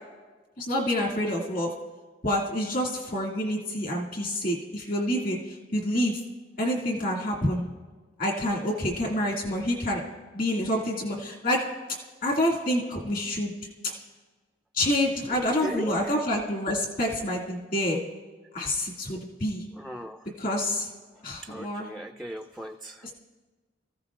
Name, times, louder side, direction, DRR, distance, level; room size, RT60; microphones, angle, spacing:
voice 1, 0.6-1.7 2.2-6.2 6.6-7.7 8.2-10.0 10.3-11.6 12.2-13.5 14.7-18.0 18.5-19.6 20.4-20.9 21.2-21.9, left 1 dB, 50° left, -1 dB, 2.2 m, -27 dB
voice 2, 15.6-16.2 19.8-20.2 21.5-23.1, equal, ahead, 6 dB, 0.3 m, -38 dB
25.0 x 15.0 x 2.4 m, 1.3 s
head